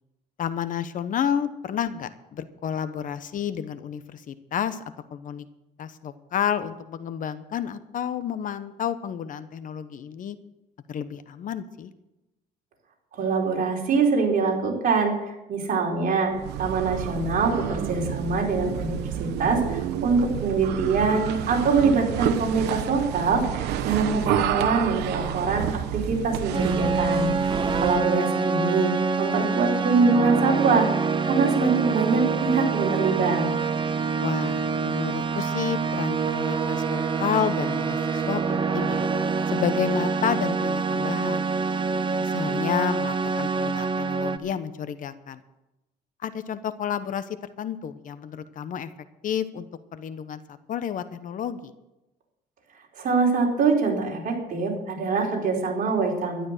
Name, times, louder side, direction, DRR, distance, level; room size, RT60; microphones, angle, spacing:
voice 1, 0.4-4.8 5.1-5.5 5.8-10.4 10.9-11.9 27.6-27.9 34.2-39.0 39.5-41.5 42.2-45.4 46.2-47.2 47.6-48.9 49.2-49.7 49.9-50.4 50.7-51.7, left 8 dB, 50° left, 12 dB, 1.0 m, -30 dB
voice 2, 13.1-15.2 15.5-16.3 16.6-27.3 27.8-33.5 52.9-56.5, right 4 dB, 55° right, -1 dB, 4.4 m, -24 dB
sound 1, 16.3-28.1, right 10 dB, 85° right, 1.1 m, -30 dB
sound 2, 26.5-44.4, right 5 dB, 30° right, 1.1 m, -26 dB
12.5 x 11.5 x 6.7 m, 0.95 s
cardioid pair, 110°, 17 cm